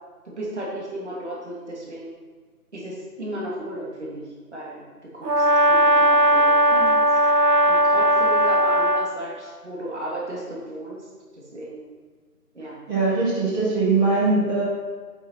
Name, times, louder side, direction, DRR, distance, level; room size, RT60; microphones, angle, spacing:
voice 1, 0.2-2.2 2.7-4.8 5.1-7.1 7.7-11.1 11.3-11.9 12.5-12.8, right 1 dB, 45° right, -5 dB, 3.0 m, -34 dB
Brass instrument, 5.2-9.1, right 1 dB, 85° right, 1.1 m, -18 dB
voice 2, 12.9-14.6, right 3 dB, 5° right, -20 dB, 1.6 m, -21 dB
8.2 x 7.4 x 4.6 m, 1.5 s
figure-of-eight pair, 170°, 47 cm